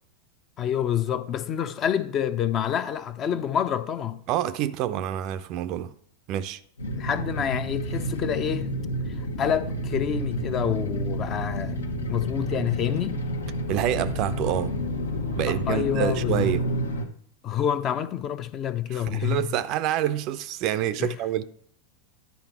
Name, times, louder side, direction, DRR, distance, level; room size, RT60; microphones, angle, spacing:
voice 1, 0.6-4.2 7.0-8.7 9.1-11.8 12.1-13.2 15.4-16.5 17.4-19.5 21.0-21.2, left 9 dB, 30° left, 0.7 m, -27 dB
voice 2, 4.3-5.9 6.3-6.6 13.7-14.7 15.4-16.7 18.9-21.4, right 11 dB, 40° right, 0.5 m, -27 dB
sound 1, 6.8-17.1, equal, 70° left, 1.1 m, -30 dB
11.0 x 4.1 x 5.4 m
figure-of-eight pair, 90°, 0 cm